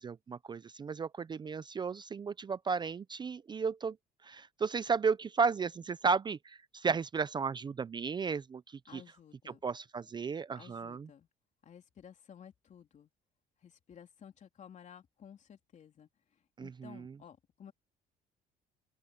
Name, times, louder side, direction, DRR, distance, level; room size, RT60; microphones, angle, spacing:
voice 1, 0.0-4.0 4.2-9.0 9.5-11.1 16.6-17.1, right 5 dB, 25° right, 0.5 m, -34 dB
voice 2, 8.9-9.6 10.6-11.3 11.6-13.1 13.6-17.7, left 8 dB, 45° left, 3.5 m, -55 dB
open air
cardioid pair, 110°, 17 cm